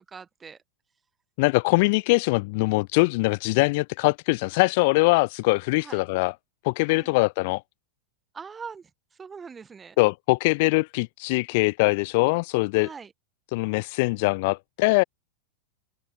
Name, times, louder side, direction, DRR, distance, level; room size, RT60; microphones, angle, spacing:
voice 1, 0.1-0.6 5.8-6.0 6.9-7.2 8.3-10.0 12.7-13.1, right 6 dB, 15° right, 1.2 m, -42 dB
voice 2, 1.4-6.3 6.6-7.6 10.0-12.9 13.5-15.0, left 26 dB, 50° left, 0.4 m, -22 dB
figure-of-eight pair, 90°, 0 cm